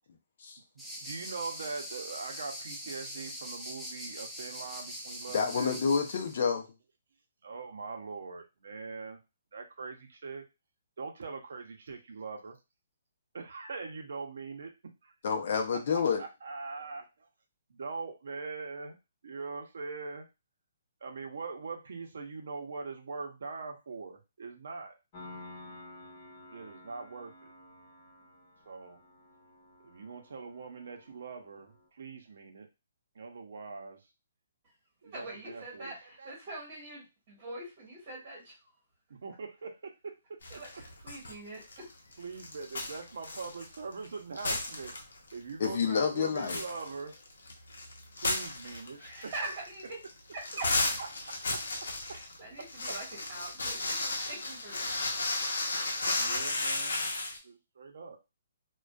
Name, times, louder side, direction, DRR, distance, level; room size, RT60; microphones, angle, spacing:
sound 1, 0.8-6.4, equal, ahead, 0.4 m, -42 dB
voice 1, 1.0-5.8 7.4-9.2 9.5-10.4 11.0-12.5 13.3-14.7 15.0-15.1 15.7-15.8 16.2-17.3 17.7-19.0 19.2-20.3 21.0-25.0 26.5-27.5 28.7-29.0 29.8-32.7 33.1-34.0 35.0-36.3 39.1-40.6 42.2-44.9 45.3-47.1 48.2-49.6 51.3-51.6 52.1-52.2 52.6-53.0 56.2-57.1 57.4-58.2, right 4 dB, 65° right, 3 dB, 0.6 m, -42 dB
voice 2, 5.3-6.6 15.2-16.2 45.6-46.6, left 6 dB, 50° left, 3 dB, 0.5 m, -28 dB
Piano, 25.1-31.9, left 1 dB, 30° left, 0.9 m, -52 dB
voice 3, 35.0-38.7 40.5-41.9 49.0-50.0 50.3-50.7 52.1-54.9, right 2 dB, 30° right, -5 dB, 1.1 m, -43 dB
sound 2, 40.4-41.3 41.6-44.1 44.3-45.3 45.6-45.7 46.2-57.4, left 2 dB, 90° left, 0.7 m, -34 dB
2.5 x 2.2 x 2.2 m, 0.26 s
hypercardioid pair, 165°, 0 cm